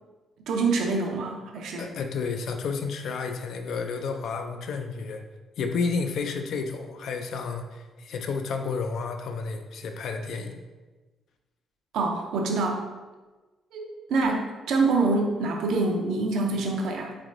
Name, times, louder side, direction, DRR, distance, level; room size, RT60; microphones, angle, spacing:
voice 1, 0.5-1.9 11.9-12.9 13.7-17.2, right 3 dB, 80° right, 1 dB, 0.4 m, -26 dB
voice 2, 1.8-5.2 5.6-10.6, left 4 dB, 70° left, 6 dB, 0.3 m, -31 dB
3.5 x 3.2 x 2.5 m, 1.2 s
cardioid pair, 90°, 0 cm